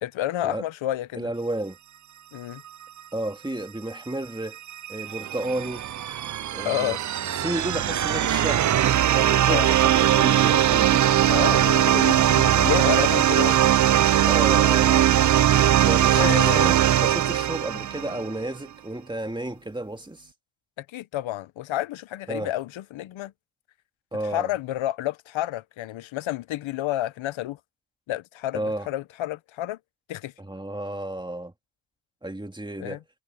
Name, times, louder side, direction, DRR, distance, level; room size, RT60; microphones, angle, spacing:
voice 1, 0.0-1.3 2.3-2.6 6.6-7.0 9.5-9.7 11.3-13.6 16.1-16.8 20.8-23.3 24.3-27.6 28.1-29.8 30.1-30.3 32.8-33.0, left 13 dB, 85° left, 0.9 m, -30 dB
voice 2, 1.1-1.8 3.1-4.6 4.9-5.9 6.5-7.0 7.3-8.7 9.1-11.1 14.3-15.0 15.8-20.3 22.3-22.5 24.1-24.5 28.5-28.9 30.4-31.5 32.2-33.0, right 1 dB, 10° right, 2.1 m, -32 dB
sound 1, 4.5-18.3, right 11 dB, 40° right, 0.5 m, -20 dB
cardioid pair, 75°, 46 cm